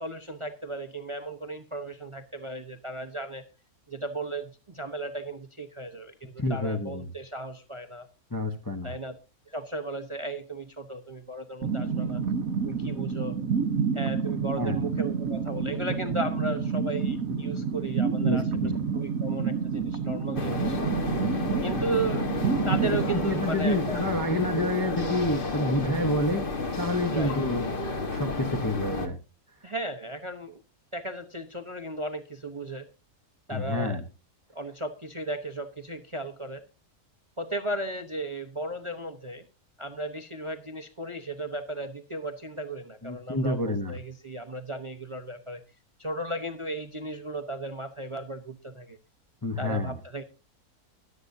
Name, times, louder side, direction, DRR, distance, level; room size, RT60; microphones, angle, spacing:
voice 1, 0.0-3.4 3.9-8.1 8.8-9.1 9.5-12.2 12.6-13.4 13.9-18.5 18.9-20.8 21.6-22.3 22.7-24.1 27.1-27.4 29.6-30.6 30.9-32.9 33.5-34.0 34.5-36.6 37.4-39.4 39.8-45.6 46.0-49.0 49.6-50.2, right 2 dB, 25° right, 0.7 m, -35 dB
voice 2, 6.4-7.1 8.3-8.9 12.1-12.2 14.6-14.8 18.2-18.8 22.9-26.4 26.8-27.8 28.1-29.2 33.5-34.0 43.0-44.0 49.4-50.0, left 1 dB, 20° left, 0.7 m, -29 dB
sound 1, 11.6-24.3, right 5 dB, 65° right, 1.5 m, -29 dB
sound 2, 20.3-29.1, left 3 dB, 35° left, 1.5 m, -31 dB
21.5 x 8.3 x 2.6 m
omnidirectional pair, 1.6 m